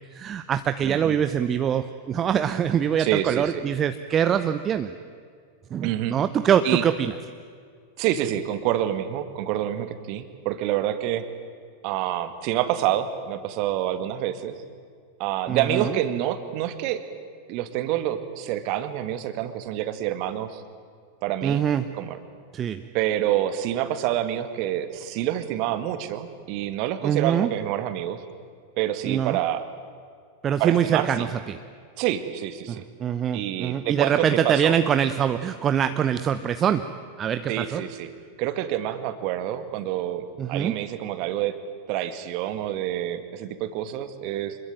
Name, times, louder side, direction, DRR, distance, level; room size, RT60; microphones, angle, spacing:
voice 1, 0.0-4.9 5.7-7.1 15.5-16.0 21.4-21.9 22.5-22.8 27.0-27.5 29.0-29.4 30.4-31.6 32.7-37.8 40.4-40.8, right 8 dB, 25° right, 10 dB, 0.9 m, -24 dB
voice 2, 0.8-1.2 3.0-3.6 5.8-6.2 6.6-6.8 8.0-11.3 11.8-14.6 15.2-17.0 17.5-20.6 21.2-21.6 22.0-22.2 22.9-28.2 28.8-29.7 30.6-31.3 32.0-32.8 33.3-34.8 37.5-38.1 38.4-41.5 41.9-44.6, right 12 dB, 45° right, 11 dB, 2.0 m, -27 dB
26.5 x 21.5 x 9.0 m, 2.1 s
figure-of-eight pair, 90°, 0 cm